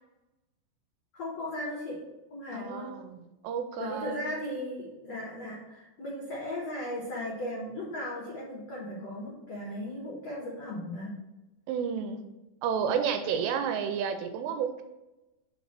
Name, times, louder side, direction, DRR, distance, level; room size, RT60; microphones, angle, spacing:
voice 1, 1.1-2.0 2.3-2.9 3.8-11.2, left 1 dB, 85° left, -4 dB, 1.4 m, -37 dB
voice 2, 2.5-3.2 3.4-4.2 11.7-12.2 12.6-14.8, right 7 dB, 85° right, 7 dB, 2.6 m, -31 dB
6.0 x 4.2 x 5.8 m, 1.0 s
omnidirectional pair, 5.2 m